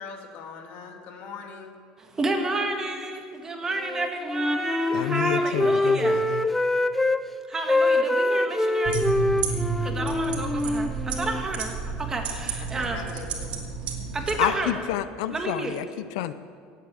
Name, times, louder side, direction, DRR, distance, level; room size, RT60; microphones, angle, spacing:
voice 1, 0.0-1.8 12.6-13.6 14.3-14.7, left 5 dB, 55° left, 3 dB, 2.1 m, -41 dB
voice 2, 2.0-6.2 7.5-9.0 9.6-13.0 14.1-14.8 15.3-15.8, right 2 dB, 15° right, 3 dB, 1.7 m, -30 dB
Wind instrument woodwind instrument, 3.8-7.2 7.5-11.4, left 1 dB, 5° left, 0.4 m, -24 dB
voice 3, 4.9-6.5 14.4-16.3, left 13 dB, 85° left, 13 dB, 0.5 m, -29 dB
sound 1, 8.9-14.4, right 5 dB, 50° right, 2.4 m, -31 dB
17.0 x 8.5 x 8.2 m, 2.2 s
cardioid pair, 150°, 3 cm